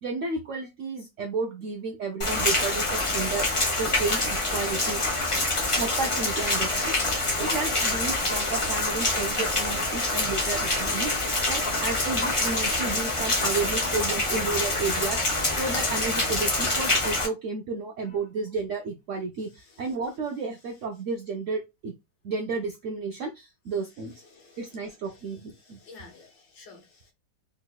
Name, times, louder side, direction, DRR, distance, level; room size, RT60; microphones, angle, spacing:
voice 1, 0.0-3.5 3.8-5.0 5.8-7.0 7.4-21.9 22.2-24.1 24.6-25.8, right 4 dB, 75° right, 0.7 m, -32 dB
Rain, 2.2-17.3, left 2 dB, 30° left, 0.5 m, -26 dB
voice 2, 24.3-25.0 25.6-27.1, left 4 dB, 85° left, 1.7 m, -52 dB
3.6 x 2.9 x 2.2 m
omnidirectional pair, 1.8 m